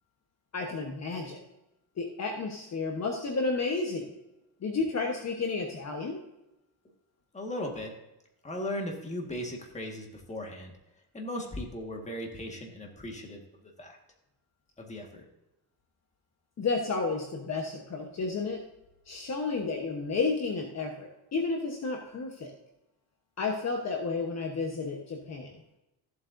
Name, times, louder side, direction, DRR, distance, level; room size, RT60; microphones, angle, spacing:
voice 1, 0.5-1.4 2.0-4.1 4.6-6.2 16.6-18.6 19.1-22.5 23.4-25.6, left 4 dB, 40° left, 2 dB, 1.2 m, -31 dB
voice 2, 7.3-7.9 8.4-10.7 11.1-14.0 14.8-15.2, left 1 dB, 15° left, 1 dB, 1.7 m, -37 dB
14.0 x 7.7 x 2.6 m, 0.93 s
cardioid pair, 140°, 41 cm